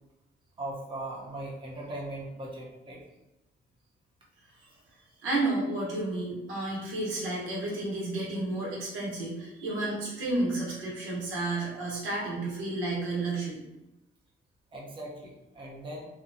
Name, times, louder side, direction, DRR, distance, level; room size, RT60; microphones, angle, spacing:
voice 1, 0.6-3.0 12.2-12.3 14.7-16.1, right 1 dB, 25° right, -3 dB, 0.6 m, -39 dB
voice 2, 5.2-13.7, right 2 dB, 85° right, -5 dB, 1.1 m, -31 dB
2.9 x 2.2 x 2.5 m, 0.96 s
cardioid pair, 90°, 20 cm